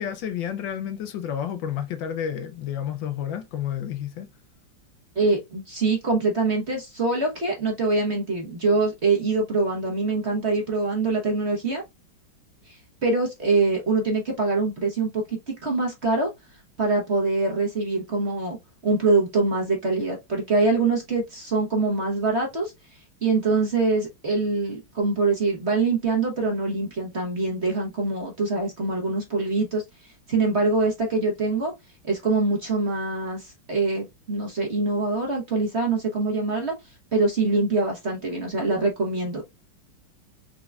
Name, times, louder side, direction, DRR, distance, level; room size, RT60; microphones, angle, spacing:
voice 1, 0.0-4.3, left 9 dB, 75° left, 1.3 m, -30 dB
voice 2, 5.1-11.8 12.7-16.3 16.8-18.6 18.8-31.7 32.1-36.7 37.1-39.4, right 3 dB, 40° right, 1.1 m, -24 dB
4.6 x 3.9 x 2.3 m
omnidirectional pair, 2.2 m